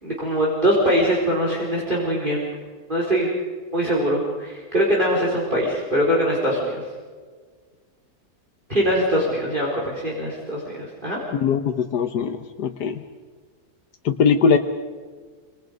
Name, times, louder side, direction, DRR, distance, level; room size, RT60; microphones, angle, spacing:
voice 1, 0.0-2.4 2.9-3.3 3.7-6.8 8.7-11.2, equal, 30° right, -4 dB, 4.6 m, -22 dB
voice 2, 11.3-13.0 14.0-14.6, left 6 dB, 85° left, 6 dB, 1.6 m, -21 dB
27.0 x 26.0 x 5.3 m, 1.5 s
omnidirectional pair, 1.7 m